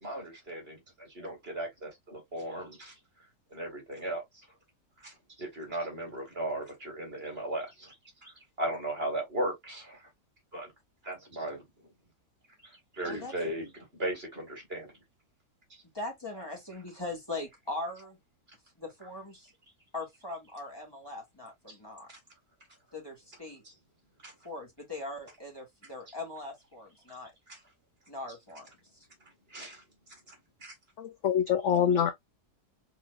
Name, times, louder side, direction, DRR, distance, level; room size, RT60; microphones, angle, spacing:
voice 1, 0.0-2.9 3.5-4.2 5.0-8.0 8.2-10.0 10.5-10.7 11.0-11.6 12.6-14.9 21.7-21.8 22.1-22.2 24.2-24.3 27.1-27.2 27.5-27.6 29.5-29.8 30.3-30.4 30.6-30.7, right 1 dB, 35° right, 2.3 m, -37 dB
voice 2, 15.9-18.2 18.8-19.5 19.9-22.1 22.9-23.6 24.4-27.3 28.1-28.7 28.9-29.1, left 2 dB, 15° left, 2.2 m, -40 dB
voice 3, 31.0-32.1, left 8 dB, 60° left, 0.8 m, -25 dB
4.4 x 4.2 x 2.5 m
omnidirectional pair, 1.8 m